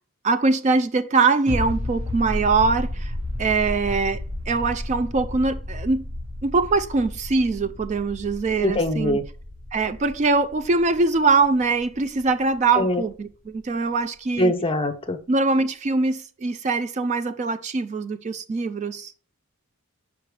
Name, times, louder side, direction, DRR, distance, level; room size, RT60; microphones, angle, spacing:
voice 1, 0.2-6.0 6.4-9.2 9.7-14.5 15.3-19.1, right 3 dB, 35° right, 0.3 m, -23 dB
sound 1, 1.5-12.8 13.1-13.2, left 1 dB, 75° right, 1.9 m, -33 dB
voice 2, 8.6-9.2 12.8-13.0 14.4-15.2, left 1 dB, 25° left, 0.6 m, -22 dB
6.4 x 5.1 x 3.2 m
head